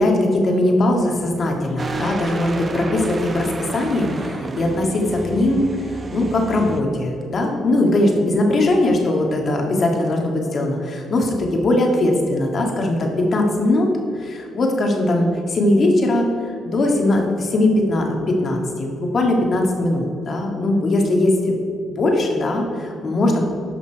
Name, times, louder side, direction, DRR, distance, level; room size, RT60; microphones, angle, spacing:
voice 1, 0.0-13.9 14.2-21.5 21.9-23.4, left 1 dB, 50° left, 1 dB, 1.8 m, -20 dB
sound 1, 1.8-6.8, right 2 dB, 35° right, 0.8 m, -30 dB
11.0 x 5.8 x 4.6 m, 2.6 s
cardioid pair, 90°, 0 cm